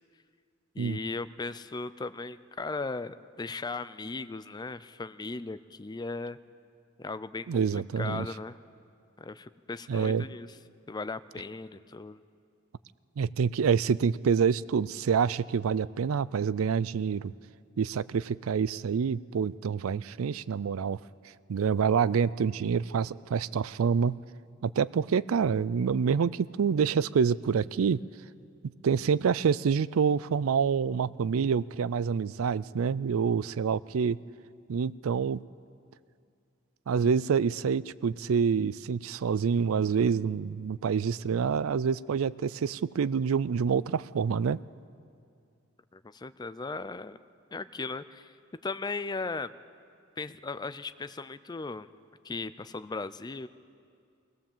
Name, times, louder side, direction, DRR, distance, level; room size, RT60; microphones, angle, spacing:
voice 1, 0.7-6.4 7.0-8.5 9.2-10.5 10.9-12.2 45.9-47.2 47.5-48.3 48.6-49.5 50.2-51.9 52.2-53.5, left 3 dB, 20° left, 13 dB, 0.4 m, -37 dB
voice 2, 7.5-8.3 9.9-10.3 13.2-17.3 17.8-21.0 21.5-24.2 24.6-28.0 28.8-34.2 34.7-35.4 36.9-44.6, right 6 dB, 85° right, 19 dB, 0.4 m, -27 dB
22.5 x 17.5 x 7.3 m, 2.3 s
head